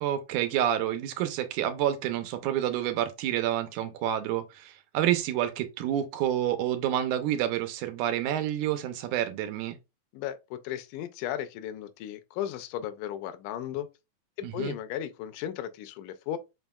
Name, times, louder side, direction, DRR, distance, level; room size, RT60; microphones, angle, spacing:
voice 1, 0.0-9.8 14.4-14.8, right 11 dB, 80° right, 2.2 m, -28 dB
voice 2, 10.1-13.9 14.5-16.4, left 11 dB, 90° left, 2.1 m, -35 dB
5.3 x 3.9 x 2.3 m
omnidirectional pair, 3.6 m